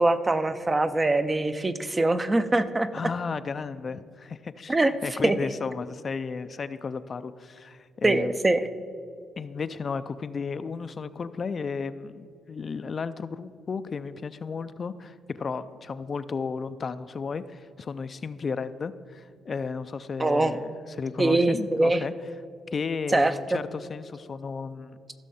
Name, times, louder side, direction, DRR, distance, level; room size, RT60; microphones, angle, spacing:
voice 1, 0.0-2.9 4.7-4.9 5.2-5.4 8.0-8.7 20.2-20.6 21.2-22.0 23.1-23.6, right 2 dB, 20° right, 11 dB, 0.5 m, -23 dB
voice 2, 2.9-4.8 5.0-8.4 9.4-22.1 22.7-25.0, left 5 dB, 40° left, 12 dB, 0.3 m, -33 dB
15.0 x 6.3 x 4.2 m, 2.2 s
cardioid pair, 90°, 0 cm